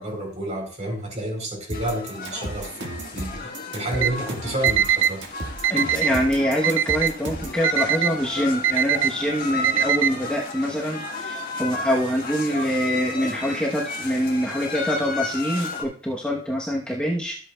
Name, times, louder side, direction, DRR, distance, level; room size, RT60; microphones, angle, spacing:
voice 1, 0.0-5.2, right 1 dB, 40° right, 1 dB, 3.7 m, -30 dB
sound 1, 1.7-15.8, left 3 dB, 50° left, 1.7 m, -33 dB
sound 2, 1.7-7.6, right 2 dB, 65° right, 1.6 m, -34 dB
Alarm, 3.9-4.1 4.6-5.1 5.6-6.1 6.6-7.1 7.6-8.1 8.6-9.1 9.6-10.1, right 10 dB, 80° right, 0.4 m, -21 dB
voice 2, 5.7-17.4, equal, 5° left, -3 dB, 0.9 m, -25 dB
12.5 x 8.1 x 2.3 m, 0.42 s
head